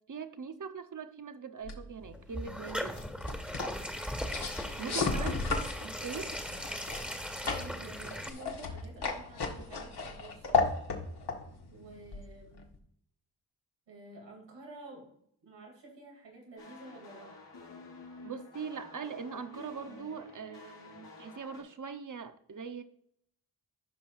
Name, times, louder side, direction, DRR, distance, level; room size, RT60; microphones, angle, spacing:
voice 1, 0.1-3.0 4.8-5.4 5.8-6.4 18.2-22.8, right 6 dB, 45° right, 1.0 m, -41 dB
sound 1, 1.6-12.8, left 4 dB, 65° left, 1.8 m, -36 dB
sound 2, 2.0-8.3, equal, 5° right, 1.7 m, -38 dB
voice 2, 4.7-5.3 7.4-10.7 11.7-12.7 13.9-15.1 15.4-17.4, right 2 dB, 85° right, 3.1 m, -50 dB
sound 3, 16.6-21.6, left 3 dB, 85° left, 3.7 m, -50 dB
15.0 x 5.5 x 2.6 m
cardioid pair, 45°, 42 cm